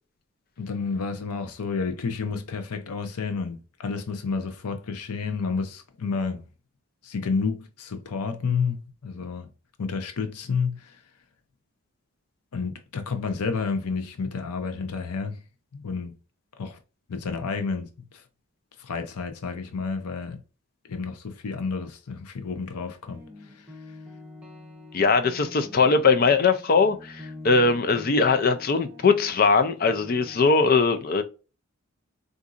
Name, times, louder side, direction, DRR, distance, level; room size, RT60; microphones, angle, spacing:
voice 1, 0.6-6.4 7.0-9.5 9.8-11.0 12.5-15.4 15.7-16.2 16.6-16.8 17.1-18.2 18.8-20.4 20.9-24.0, left 5 dB, 90° left, 0.6 m, -30 dB
sound 1, 23.1-30.5, left 1 dB, 5° right, 0.9 m, -45 dB
voice 2, 24.9-31.2, left 4 dB, 40° left, 0.4 m, -21 dB
3.9 x 2.5 x 2.4 m
head